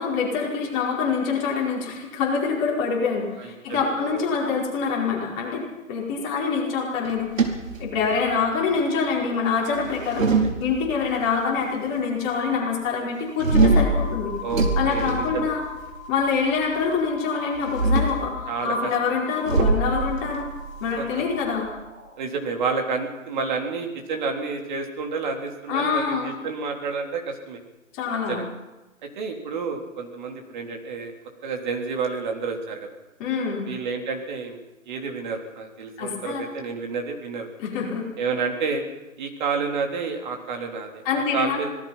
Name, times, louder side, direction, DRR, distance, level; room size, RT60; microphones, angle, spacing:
voice 1, 0.0-7.5 7.8-10.3 10.6-14.3 14.8-15.6 16.1-20.5 20.8-21.7 25.7-26.3 27.9-28.4 33.2-33.7 36.0-36.5 37.6-38.1 41.0-41.6, left 5 dB, 20° left, -3 dB, 4.9 m, -25 dB
voice 2, 3.4-4.3 10.2-10.3 14.4-15.5 18.5-18.7 21.0-21.1 22.2-27.6 28.3-28.5 29.2-31.1 31.4-32.9 33.7-34.6 34.9-37.5 38.2-38.8 39.2-41.7, right 4 dB, 35° right, 3 dB, 3.6 m, -30 dB
sound 1, 7.0-8.4 9.7-11.2 13.4-16.0 17.5-18.3 19.5-21.8, right 2 dB, 75° right, 4.7 m, -23 dB
sound 2, 13.7-22.2, left 5 dB, 20° right, 3.7 m, -40 dB
26.0 x 18.0 x 5.7 m, 1.1 s
figure-of-eight pair, 150°, 40 cm